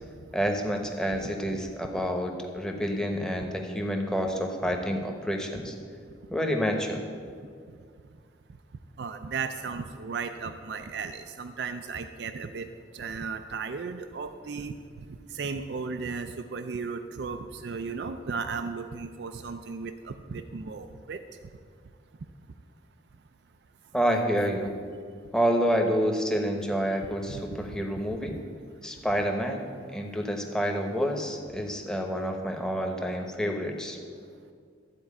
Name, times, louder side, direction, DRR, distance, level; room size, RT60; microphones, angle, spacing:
voice 1, 0.3-5.7 6.3-7.0 23.9-24.7 25.3-28.3 28.8-29.6 29.9-34.0, equal, 5° left, 3 dB, 0.9 m, -28 dB
voice 2, 9.0-12.7 12.9-14.7 15.3-21.2 27.3-27.6, right 5 dB, 60° right, 8 dB, 0.4 m, -35 dB
13.0 x 4.5 x 8.5 m, 2.1 s
head